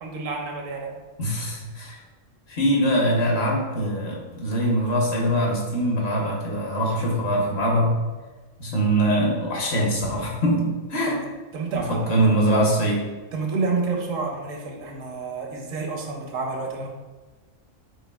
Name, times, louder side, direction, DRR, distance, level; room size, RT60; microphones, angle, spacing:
voice 1, 0.0-1.0 11.0-11.2 11.5-12.3 13.3-16.9, right 4 dB, 80° right, 1 dB, 1.1 m, -29 dB
voice 2, 1.2-2.0 2.5-7.9 8.6-11.2 11.7-13.1, right 1 dB, 55° left, -2 dB, 1.1 m, -23 dB
6.1 x 2.6 x 2.3 m, 1.3 s
omnidirectional pair, 1.3 m